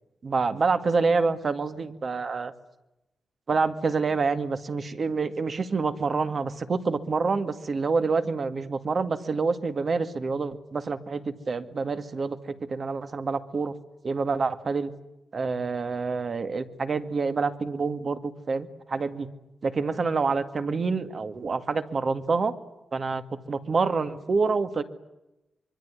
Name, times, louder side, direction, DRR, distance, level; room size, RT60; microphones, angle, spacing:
voice 1, 0.2-2.5 3.5-13.7 14.0-14.9 15.3-19.3 19.6-22.5 22.9-24.8, right 4 dB, 45° right, 10 dB, 2.0 m, -27 dB
25.0 x 23.5 x 9.7 m, 0.94 s
wide cardioid pair, 125°, 0 cm